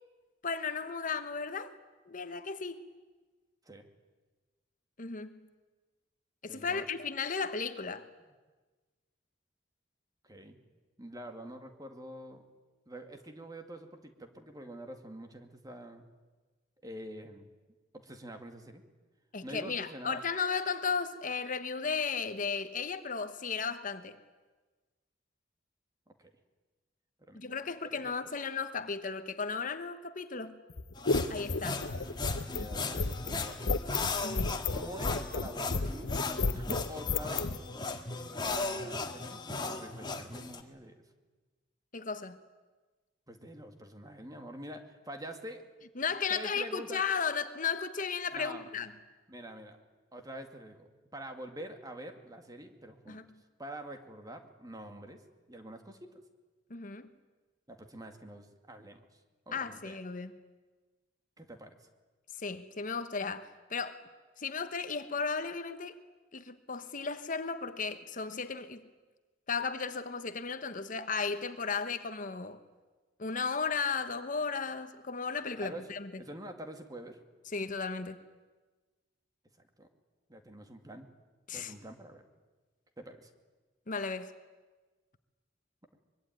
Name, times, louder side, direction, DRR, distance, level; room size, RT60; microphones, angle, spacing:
voice 1, 0.4-1.7 2.1-2.8 5.0-5.4 6.4-8.1 19.3-24.2 27.3-30.6 31.3-31.8 34.2-34.6 41.9-42.4 46.0-48.9 53.1-53.3 56.7-57.1 59.5-60.3 62.4-64.0 64.4-66.0 66.3-68.8 69.5-72.6 73.2-76.1 77.5-78.2 81.5-81.7 83.9-84.3, left 5 dB, 45° left, 1.1 m, -35 dB
voice 2, 6.5-6.9 10.2-10.6 11.0-12.4 12.9-16.1 16.8-17.5 17.9-18.8 19.4-20.2 26.1-26.3 27.2-27.5 28.0-28.1 32.5-33.6 34.7-36.2 36.5-37.5 38.4-41.0 43.3-45.6 46.3-47.0 48.3-48.7 49.3-49.8 50.1-53.2 53.6-55.2 55.5-56.1 57.7-59.0 59.5-60.0 61.4-61.9 75.6-75.8 76.2-77.2 79.8-79.9 80.3-81.1 81.5-82.2 83.0-83.3, right 1 dB, 20° right, 2.3 m, -46 dB
sound 1, 30.7-37.6, left 3 dB, 90° left, 1.0 m, -32 dB
sound 2, 30.9-40.6, left 3 dB, 25° left, 1.8 m, -37 dB
24.0 x 22.5 x 9.5 m
head